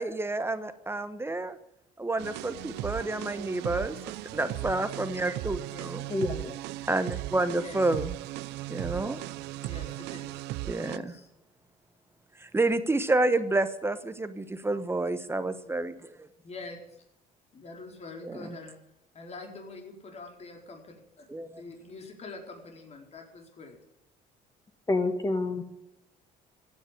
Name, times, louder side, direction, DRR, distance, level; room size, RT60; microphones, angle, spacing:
voice 1, 0.0-1.6 2.0-6.0 6.9-8.1 8.7-9.3 10.6-11.1 12.4-16.3 18.2-18.5 21.3-21.5, right 2 dB, 15° right, 11 dB, 1.1 m, -29 dB
sound 1, 2.2-11.0, right 17 dB, 90° right, 0.6 m, -37 dB
voice 2, 6.1-6.5 24.9-25.6, left 2 dB, 20° left, 8 dB, 1.8 m, -28 dB
voice 3, 7.5-7.8 9.6-10.4 10.7-11.3 16.4-17.0 17.5-18.8 19.1-20.8 21.5-23.8, left 3 dB, 40° left, 3 dB, 4.5 m, -45 dB
15.5 x 9.8 x 9.2 m, 0.83 s
cardioid pair, 110°, 17 cm